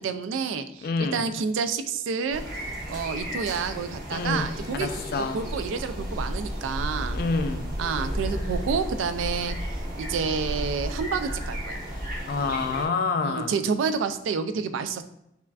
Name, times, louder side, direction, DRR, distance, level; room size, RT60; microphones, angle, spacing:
voice 1, 0.0-2.4 2.9-7.2 7.8-11.8 13.2-15.0, right 5 dB, 90° right, 10 dB, 0.3 m, -29 dB
voice 2, 0.8-1.2 4.1-5.4 7.1-7.7 12.3-13.5, left 4 dB, 50° left, 8 dB, 0.3 m, -27 dB
sound 1, 2.3-12.9, equal, 50° right, 1.1 m, -33 dB
5.4 x 2.4 x 2.3 m, 0.80 s
head